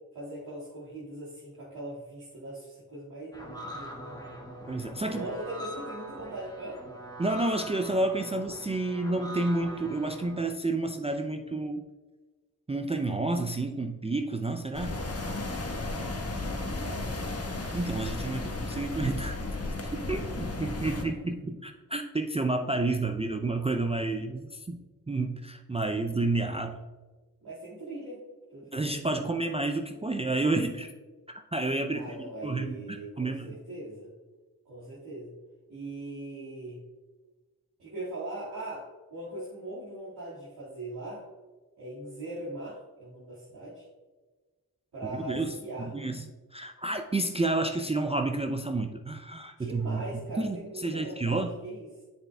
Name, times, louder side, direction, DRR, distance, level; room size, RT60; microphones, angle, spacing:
voice 1, 0.1-4.5 5.1-6.8 16.4-17.4 20.7-20.8 27.4-28.2 28.5-29.3 31.9-34.1 34.7-35.3 35.7-36.8 37.8-41.2 41.8-43.8 44.9-45.9 49.6-51.9, right 1 dB, 75° right, -10 dB, 2.1 m, -40 dB
sound 1, 3.3-10.4, right 1 dB, 10° left, 1.3 m, -43 dB
voice 2, 4.7-5.3 7.2-11.8 12.7-15.0 17.7-19.4 19.9-24.8 25.1-26.8 28.7-30.9 31.5-32.1 32.4-32.8 33.2-33.6 45.1-50.0 50.4-51.5, right 2 dB, 15° right, 4 dB, 0.5 m, -30 dB
sound 2, 14.7-21.0, left 2 dB, 40° left, 1.2 m, -34 dB
7.5 x 6.9 x 2.3 m, 1.3 s
supercardioid pair, 40°, 39 cm